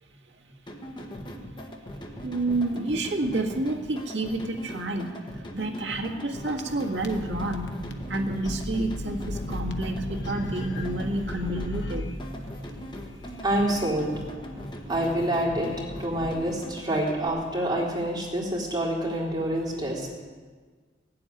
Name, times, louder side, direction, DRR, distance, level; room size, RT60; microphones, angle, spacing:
sound 1, 0.7-17.3, equal, 25° left, 1.3 m, -40 dB
voice 1, 2.2-5.1 5.5-7.7 8.1-12.1 18.5-18.6, right 2 dB, 70° right, 1 dB, 1.9 m, -29 dB
sound 2, 6.4-16.3, left 1 dB, 70° left, 1.2 m, -37 dB
voice 2, 13.4-14.3 14.9-15.7 16.0-20.1, right 1 dB, 25° right, -4 dB, 3.7 m, -27 dB
16.0 x 7.7 x 10.0 m, 1.5 s
head